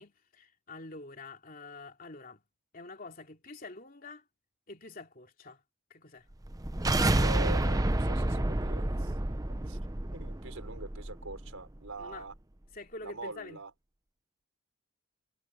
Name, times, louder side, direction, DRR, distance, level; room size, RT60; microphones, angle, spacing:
voice 1, 0.0-2.4 2.7-4.2 4.7-5.6 5.9-6.3 12.0-12.3 12.7-13.6, left 3 dB, 45° left, 3.0 m, -46 dB
sound 1, 6.4-11.5, right 1 dB, 15° right, 0.7 m, -29 dB
voice 2, 7.1-9.1 9.6-9.8 10.1-12.3 13.0-13.7, right 2 dB, 85° right, 5.5 m, -42 dB
head